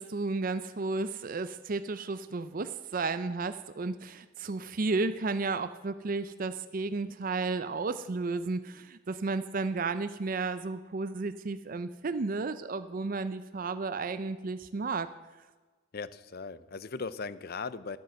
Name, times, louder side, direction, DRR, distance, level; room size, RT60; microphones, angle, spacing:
voice 1, 0.0-15.1, right 3 dB, 45° right, 11 dB, 0.5 m, -33 dB
voice 2, 15.9-18.0, left 4 dB, 50° left, 16 dB, 0.5 m, -38 dB
12.0 x 9.2 x 7.7 m, 1.2 s
head